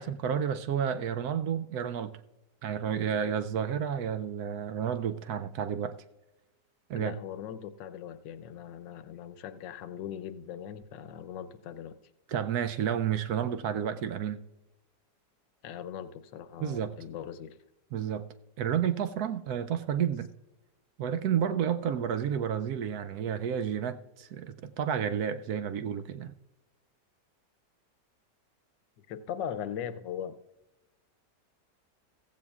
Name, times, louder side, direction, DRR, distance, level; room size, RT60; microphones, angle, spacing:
voice 1, 0.0-2.2 2.6-5.9 6.9-7.1 12.3-14.4 16.6-16.9 17.9-18.3 18.6-20.3 21.0-26.3, right 8 dB, 70° right, 1.0 m, -31 dB
voice 2, 7.0-12.0 15.6-17.6 29.1-30.4, left 9 dB, 85° left, 1.4 m, -40 dB
15.5 x 15.0 x 2.4 m
omnidirectional pair, 1.9 m